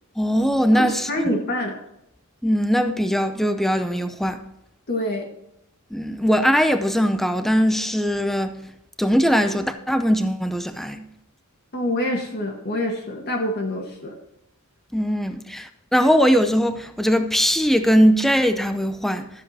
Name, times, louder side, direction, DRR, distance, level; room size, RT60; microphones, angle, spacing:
voice 1, 0.2-1.1 2.4-4.4 5.9-8.6 9.0-11.0 14.9-19.3, equal, ahead, 0.6 m, -20 dB
voice 2, 0.7-1.8 4.9-5.3 11.7-14.1, left 1 dB, 45° left, 1.6 m, -26 dB
12.5 x 7.5 x 4.2 m
head